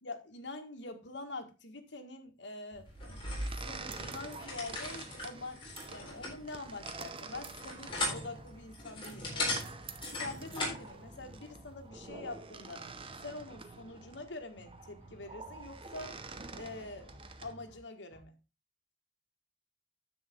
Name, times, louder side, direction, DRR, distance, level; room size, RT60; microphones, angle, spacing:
voice 1, 0.0-2.9 3.6-9.6 10.2-12.9 13.2-16.2 16.5-17.1 17.4-18.4, left 2 dB, 85° left, 1.7 m, -45 dB
sound 1, 2.7-17.5, right 3 dB, 30° right, 0.9 m, -46 dB
sound 2, 3.0-10.9, left 2 dB, 30° left, 4.0 m, -39 dB
sound 3, 7.7-8.9 9.2-10.7 11.0-12.4 12.8-14.2 14.6-16.0 16.3-17.8 18.1-18.2, right 1 dB, 10° left, 5.3 m, -57 dB
9.9 x 7.4 x 3.6 m
head